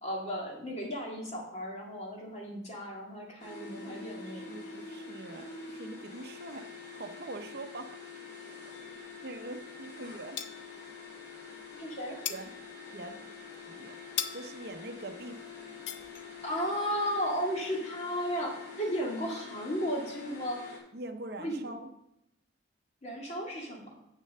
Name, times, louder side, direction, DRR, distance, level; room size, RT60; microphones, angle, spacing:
voice 1, 0.0-4.5 11.7-12.2 16.4-20.8 21.4-21.7 23.0-23.9, equal, 35° left, -1 dB, 2.0 m, -34 dB
sound 1, 3.4-20.8, left 5 dB, 65° left, 4.2 m, -46 dB
voice 2, 3.8-8.0 9.2-10.4 12.1-12.5 12.9-13.2 13.7-14.0 14.3-15.5 20.9-21.9, right 2 dB, 55° right, 8 dB, 0.6 m, -44 dB
sound 2, 8.7-9.8 10.0-11.2 11.5-16.7, left 10 dB, 80° left, 0.6 m, -41 dB
7.5 x 6.7 x 6.7 m, 0.84 s
head